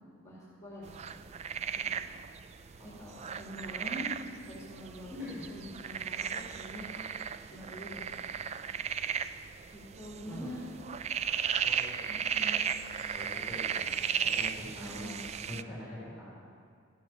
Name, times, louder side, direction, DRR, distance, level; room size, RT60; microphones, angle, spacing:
voice 1, 0.0-0.9 1.5-2.0 2.8-6.9 7.5-8.1 8.5-8.6 9.7-10.6 12.1-12.7 14.8-15.2, equal, 15° left, -6 dB, 2.3 m, -45 dB
sound 1, 0.9-15.6, right 7 dB, 35° right, 0.3 m, -36 dB
voice 2, 2.8-3.7 5.1-5.4 10.2-10.5 11.6-12.7 13.1-16.3, left 1 dB, 10° right, -7 dB, 3.3 m, -45 dB
14.0 x 9.2 x 5.9 m, 2.2 s
head